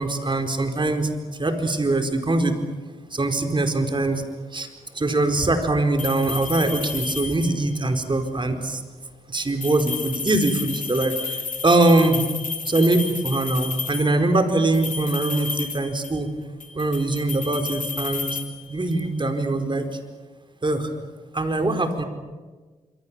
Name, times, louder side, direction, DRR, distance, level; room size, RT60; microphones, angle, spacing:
voice 1, 0.0-2.6 3.1-4.2 4.5-4.7 4.9-8.8 9.3-12.2 12.6-16.3 16.7-18.4 18.7-19.9 20.6-20.9 21.3-22.0, right 2 dB, 35° right, 6 dB, 4.6 m, -22 dB
sound 1, 6.0-7.7 9.5-14.2 14.7-16.3 16.6-19.1, left 4 dB, 60° left, 3.0 m, -32 dB
27.0 x 23.5 x 7.5 m, 1.3 s
supercardioid pair, 50°, 14 cm